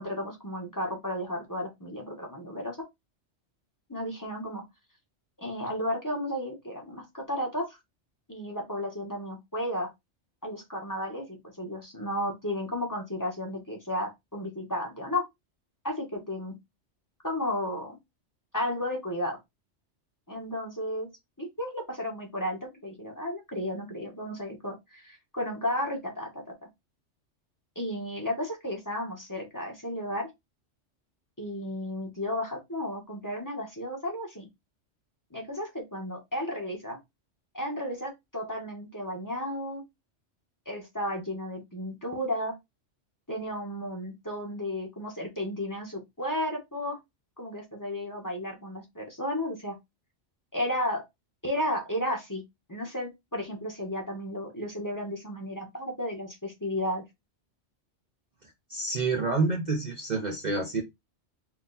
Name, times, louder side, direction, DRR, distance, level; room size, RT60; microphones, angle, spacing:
voice 1, 0.0-2.8 3.9-4.6 5.4-7.8 8.3-9.9 10.4-15.2 15.8-16.6 17.2-18.0 18.5-19.4 20.3-21.1 21.4-26.5 27.7-30.3 31.4-34.5 35.3-37.0 37.5-39.8 40.7-42.6 43.3-47.0 47.4-49.8 50.5-51.0 51.4-57.0, left 1 dB, 15° left, 1.1 m, -33 dB
voice 2, 58.7-60.8, right 3 dB, 45° right, 0.7 m, -28 dB
4.3 x 2.3 x 3.9 m
omnidirectional pair, 1.2 m